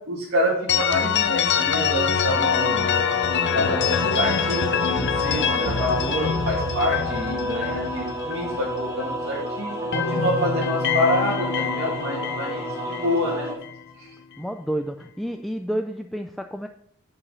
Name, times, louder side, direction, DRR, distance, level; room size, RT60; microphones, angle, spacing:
voice 1, 0.1-2.9 3.5-13.5 14.0-14.1, equal, 55° right, -7 dB, 2.3 m, -27 dB
sound 1, 0.7-9.4 9.7-13.8, left 7 dB, 55° left, 0.7 m, -25 dB
sound 2, 2.3-13.5, equal, 15° right, 3.8 m, -31 dB
voice 2, 14.4-16.7, right 1 dB, ahead, 5 dB, 0.3 m, -30 dB
9.9 x 4.9 x 5.6 m, 0.70 s
head